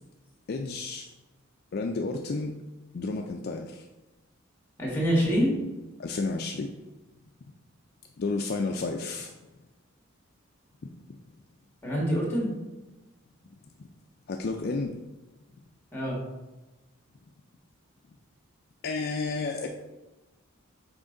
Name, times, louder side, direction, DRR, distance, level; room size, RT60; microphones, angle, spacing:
voice 1, 0.5-1.1 1.7-2.5 2.9-3.8 6.0-6.7 8.2-9.3 11.1-11.2 13.8-13.9 14.3-14.9 18.8-19.7, left 3 dB, 50° left, 3 dB, 0.4 m, -31 dB
voice 2, 4.8-5.5 11.8-12.5 15.9-16.2, equal, 10° left, -3 dB, 1.8 m, -25 dB
6.2 x 4.3 x 3.8 m, 1.1 s
head